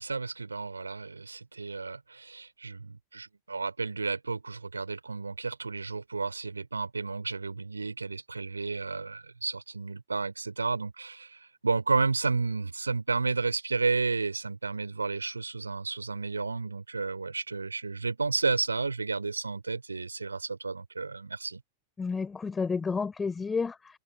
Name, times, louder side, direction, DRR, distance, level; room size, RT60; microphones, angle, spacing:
voice 1, 0.0-21.6, right 4 dB, 80° right, 3.2 m, -32 dB
voice 2, 22.0-24.0, left 5 dB, 15° left, 3.8 m, -31 dB
figure-of-eight pair, 90°, 0 cm